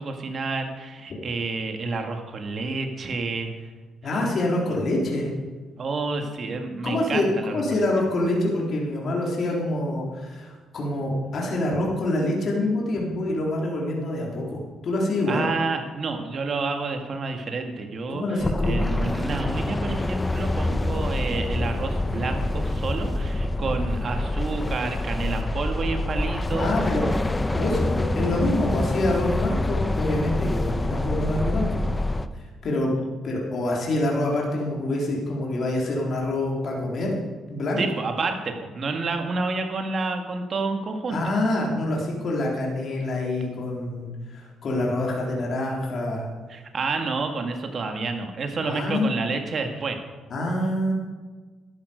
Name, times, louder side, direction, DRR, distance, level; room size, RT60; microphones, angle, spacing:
voice 1, 0.0-3.7 5.8-7.9 15.3-26.7 37.8-41.2 46.5-50.0, right 3 dB, 50° right, 5 dB, 1.9 m, -29 dB
voice 2, 4.0-5.3 6.8-15.5 18.1-18.8 20.6-20.8 26.6-27.1 27.5-31.9 32.3-37.2 37.5-37.8 41.1-46.3 48.6-49.1 50.3-50.9, left 1 dB, 55° left, -2 dB, 3.7 m, -26 dB
sound 1, 18.4-32.3, left 2 dB, 15° left, 0.7 m, -26 dB
13.5 x 11.0 x 5.2 m, 1.4 s
cardioid pair, 90°, 0 cm